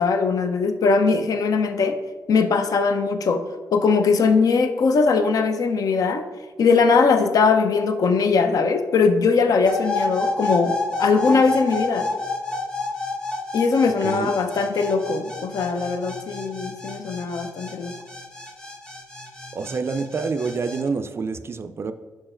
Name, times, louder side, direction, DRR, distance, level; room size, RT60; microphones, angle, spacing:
voice 1, 0.0-2.0 2.3-3.4 3.7-6.2 6.6-12.1 13.5-17.9, left 4 dB, 70° left, 8 dB, 0.6 m, -20 dB
sound 1, 9.7-20.8, left 2 dB, 10° left, 0.8 m, -29 dB
voice 2, 19.5-21.9, right 4 dB, 40° right, 10 dB, 0.3 m, -27 dB
5.8 x 4.5 x 4.3 m, 1.3 s
cardioid pair, 110°, 6 cm